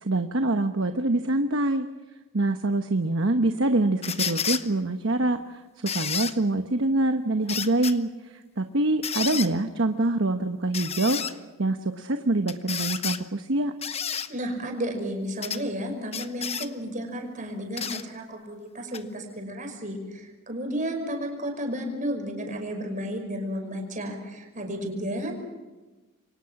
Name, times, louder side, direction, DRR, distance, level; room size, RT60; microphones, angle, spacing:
voice 1, 0.0-1.9 2.3-11.2 11.6-13.7, right 2 dB, 65° right, 7 dB, 1.1 m, -25 dB
sound 1, 4.0-4.6 5.9-6.3 7.5-7.9 9.0-9.5 10.7-11.3 12.5-13.2 13.8-14.3 15.4-15.6 16.1-16.7 17.8-18.0 18.9-19.0, left 7 dB, 30° left, 1.0 m, -30 dB
voice 2, 14.3-25.4, equal, 40° right, 3 dB, 5.6 m, -32 dB
28.0 x 24.0 x 6.0 m, 1.2 s
head